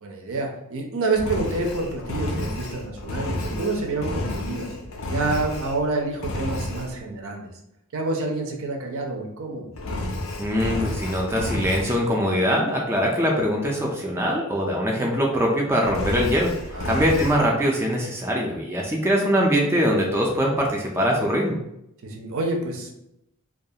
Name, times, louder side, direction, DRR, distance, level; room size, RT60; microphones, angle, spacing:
voice 1, 0.0-4.7 5.1-7.5 7.9-9.7 16.7-16.9 18.9-19.0 22.0-22.9, right 3 dB, 65° right, 2 dB, 0.5 m, -28 dB
Engine, 1.1-5.9 6.2-6.9 9.8-12.0 15.8-17.4, left 1 dB, 60° left, 0.4 m, -30 dB
voice 2, 10.4-21.6, equal, 10° right, -1 dB, 0.3 m, -22 dB
2.3 x 2.3 x 2.7 m, 0.82 s
head